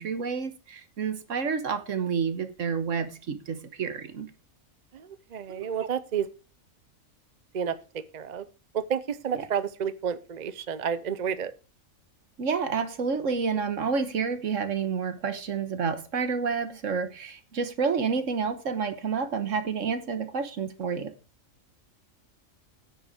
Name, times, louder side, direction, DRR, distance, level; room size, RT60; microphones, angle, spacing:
voice 1, 0.0-4.3 5.5-5.7 9.3-9.4 12.4-21.1, right 5 dB, 65° right, 1.5 m, -29 dB
voice 2, 4.9-6.3 7.5-7.7 8.1-8.4 8.7-11.5, right 7 dB, 45° right, 0.6 m, -30 dB
9.9 x 7.9 x 4.9 m
omnidirectional pair, 1.4 m